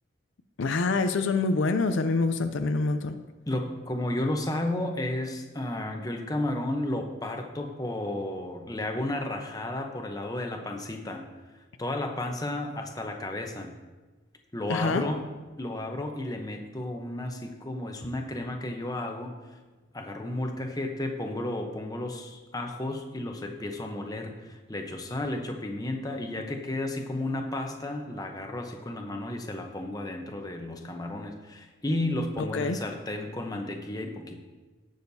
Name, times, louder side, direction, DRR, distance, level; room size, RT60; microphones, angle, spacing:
voice 1, 0.6-3.2 14.7-15.0 32.5-32.8, left 3 dB, 65° left, 9 dB, 0.5 m, -26 dB
voice 2, 3.5-11.2 11.8-13.8 14.5-15.3 15.6-19.6 19.9-34.4, left 1 dB, 20° left, 3 dB, 0.8 m, -33 dB
17.0 x 6.4 x 2.7 m, 1.2 s
head